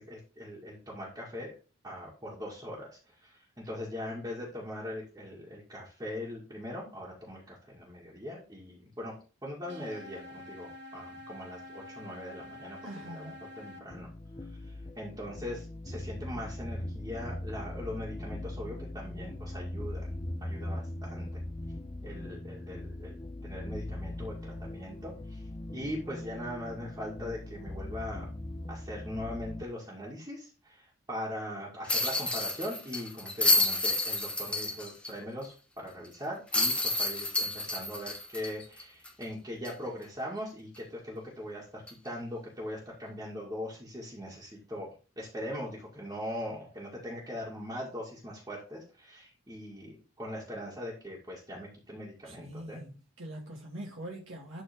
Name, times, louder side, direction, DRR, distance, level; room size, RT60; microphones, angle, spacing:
voice 1, 0.0-1.5 1.8-9.1 9.4-13.3 13.6-14.1 14.7-20.2 20.4-21.4 22.0-25.4 25.7-28.3 28.7-44.9 45.2-52.9, left 1 dB, 15° right, 2.2 m, -41 dB
sound 1, 9.7-13.8, left 1 dB, 55° right, 1.3 m, -47 dB
voice 2, 12.8-13.4 52.2-54.6, right 1 dB, 70° right, 2.2 m, -43 dB
sound 2, 13.9-29.6, left 1 dB, 25° left, 0.6 m, -40 dB
sound 3, 31.9-35.1 35.4-35.5 36.5-39.2 39.6-39.7 41.9-42.1, left 2 dB, 5° left, 1.0 m, -29 dB
12.0 x 4.2 x 3.7 m
head